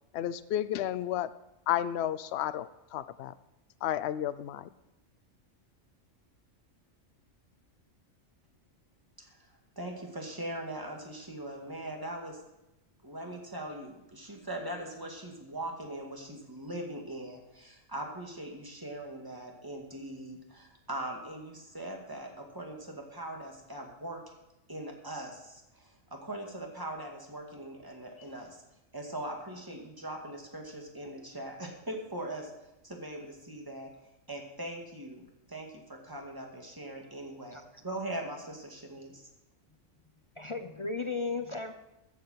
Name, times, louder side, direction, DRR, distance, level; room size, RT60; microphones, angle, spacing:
voice 1, 0.1-1.3 1.7-3.3 3.8-4.7, left 11 dB, 65° left, 13 dB, 0.7 m, -32 dB
voice 2, 9.2-9.5 9.8-12.4 13.0-24.2 24.7-28.6 28.9-32.5 32.8-33.9 34.3-35.2 35.5-39.2, right 1 dB, 15° right, 1 dB, 2.1 m, -41 dB
voice 3, 40.4-41.7, left 4 dB, 30° left, 7 dB, 0.6 m, -35 dB
14.0 x 7.7 x 5.7 m, 0.93 s
omnidirectional pair, 1.3 m